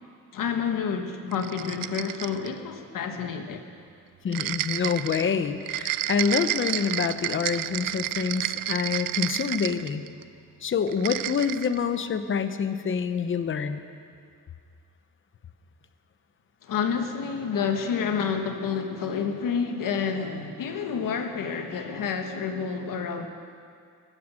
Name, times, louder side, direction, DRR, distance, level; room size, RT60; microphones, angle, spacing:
voice 1, 0.3-3.7 16.6-23.3, left 6 dB, 75° left, 5 dB, 1.5 m, -29 dB
sound 1, 1.3-2.6 4.3-10.2 10.9-11.8, right 13 dB, 85° right, 0.5 m, -31 dB
voice 2, 4.2-10.0 10.6-13.8, left 6 dB, 35° left, 10 dB, 0.8 m, -27 dB
16.0 x 14.0 x 6.4 m, 2.2 s
wide cardioid pair, 165°, 33 cm